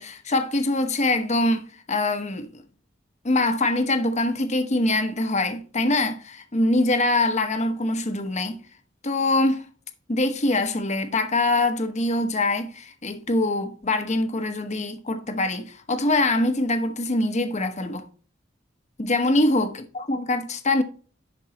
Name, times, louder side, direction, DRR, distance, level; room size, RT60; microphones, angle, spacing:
voice 1, 0.0-2.6 3.2-8.6 9.0-9.7 10.1-18.1 19.0-20.8, left 2 dB, 35° left, 1.0 m, -24 dB
11.0 x 4.7 x 2.9 m
head